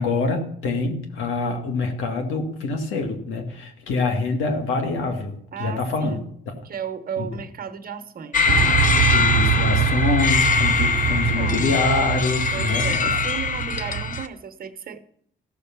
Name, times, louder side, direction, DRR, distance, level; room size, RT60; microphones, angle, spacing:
voice 1, 0.0-6.2 9.1-13.2, left 3 dB, 90° left, 4 dB, 2.1 m, -25 dB
voice 2, 5.5-6.3 6.6-8.7 11.0-11.8 12.5-15.0, right 7 dB, 45° right, 10 dB, 1.1 m, -34 dB
sound 1, 8.3-14.3, left 5 dB, 40° left, 0.9 m, -22 dB
sound 2, 8.5-14.2, right 11 dB, 65° right, 0.4 m, -24 dB
15.0 x 6.7 x 5.9 m, 0.69 s
cardioid pair, 90°, 20 cm